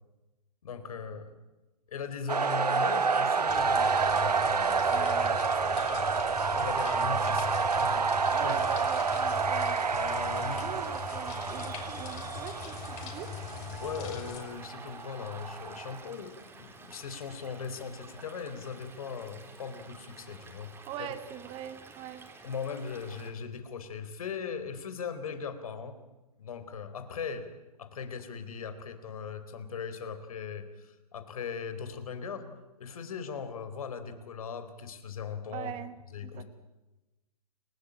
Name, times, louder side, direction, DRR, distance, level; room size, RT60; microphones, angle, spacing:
voice 1, 0.6-1.3 1.9-8.1 8.4-8.6 9.9-10.7 13.8-20.7 21.0-21.1 22.4-26.0 26.4-27.5 27.8-32.5 32.8-35.7 36.1-36.4, left 6 dB, 65° left, 10 dB, 4.1 m, -39 dB
sound 1, 2.3-16.1, right 5 dB, 85° right, 1.4 m, -29 dB
sound 2, 3.5-14.4, left 9 dB, 35° left, 5.4 m, -41 dB
voice 2, 4.9-5.4 8.3-9.8 10.5-13.3 20.9-22.3 35.5-36.0 36.2-36.4, right 11 dB, 25° right, 11 dB, 1.9 m, -42 dB
Stream / Liquid, 8.3-23.3, right 3 dB, 10° right, 4.2 m, -51 dB
29.5 x 18.0 x 8.9 m, 1.1 s
hypercardioid pair, 125°, 20 cm